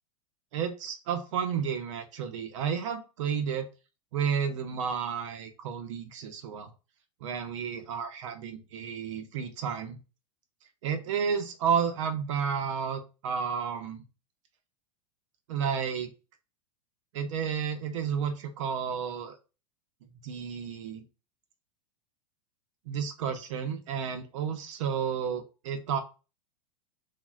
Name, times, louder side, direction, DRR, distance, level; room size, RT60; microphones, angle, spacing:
voice 1, 0.5-3.7 4.1-6.7 7.2-10.0 10.8-14.0 15.5-16.1 17.1-19.4 20.2-21.0 22.9-26.0, right 7 dB, 50° right, 8 dB, 0.5 m, -31 dB
4.0 x 2.1 x 2.3 m, 0.32 s
supercardioid pair, 175°, 20 cm